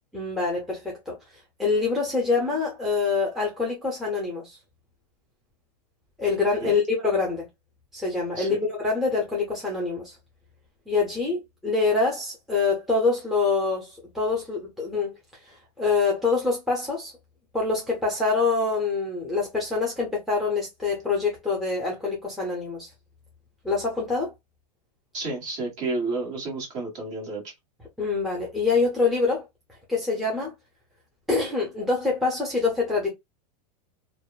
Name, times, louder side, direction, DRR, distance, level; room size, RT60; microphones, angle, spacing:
voice 1, 0.1-1.2 1.6-4.6 6.2-7.5 7.9-10.2 10.9-15.1 15.4-17.1 17.5-22.9 23.6-24.3 28.0-29.5 29.9-30.5 31.3-33.1, left 4 dB, ahead, 0.8 m, -25 dB
voice 2, 25.1-27.4, right 3 dB, 35° right, 1.6 m, -31 dB
2.8 x 2.1 x 2.3 m
supercardioid pair, 140°, 20 cm